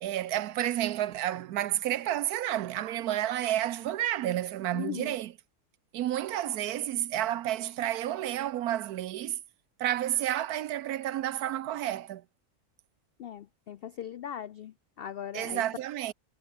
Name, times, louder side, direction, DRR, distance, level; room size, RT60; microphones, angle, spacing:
voice 1, 0.0-5.3 5.9-9.4 9.8-12.2 15.3-16.1, right 12 dB, 85° right, 1.2 m, -30 dB
voice 2, 4.7-5.2 13.2-15.6, left 10 dB, 75° left, 0.5 m, -39 dB
omnidirectional pair, 1.6 m